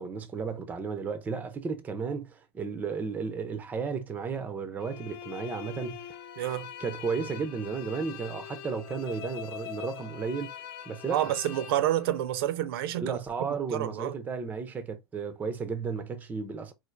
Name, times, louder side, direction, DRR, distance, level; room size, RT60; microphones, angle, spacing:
voice 1, 0.0-6.1 6.8-10.5 10.9-11.3 13.0-16.7, right 5 dB, 10° right, 0.5 m, -34 dB
sound 1, 4.8-12.5, left 10 dB, 55° left, 0.6 m, -43 dB
voice 2, 6.4-6.7 11.1-14.1, right 13 dB, 65° right, 0.5 m, -29 dB
4.3 x 2.5 x 2.4 m
supercardioid pair, 150°, 14 cm